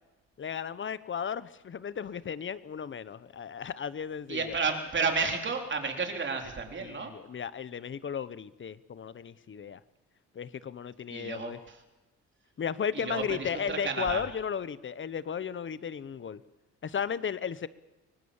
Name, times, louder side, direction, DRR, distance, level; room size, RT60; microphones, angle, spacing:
voice 1, 0.4-4.6 6.8-9.8 10.3-11.6 12.6-16.4 16.8-17.7, left 7 dB, 40° left, 17 dB, 1.0 m, -35 dB
voice 2, 4.3-7.1 11.1-11.8 12.9-14.2, right 4 dB, 40° right, 3 dB, 4.0 m, -32 dB
24.0 x 19.5 x 7.3 m, 1.1 s
cardioid pair, 90°, 30 cm